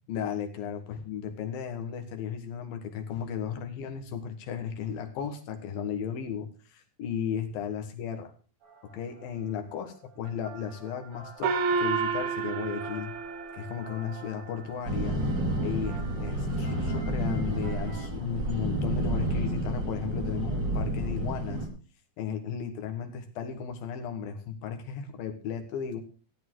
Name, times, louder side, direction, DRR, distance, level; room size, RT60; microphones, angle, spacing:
voice 1, 0.1-8.3 8.9-13.1 13.5-15.2 15.6-21.7 22.2-26.0, left 8 dB, 75° left, 6 dB, 3.3 m, -35 dB
sound 1, 8.6-18.1, right 3 dB, 65° right, 8.5 m, -50 dB
Gong, 11.4-14.3, right 5 dB, 90° right, 3.2 m, -30 dB
sound 2, 14.8-21.7, right 1 dB, 30° right, 2.9 m, -30 dB
15.5 x 8.4 x 4.7 m, 0.37 s
omnidirectional pair, 4.2 m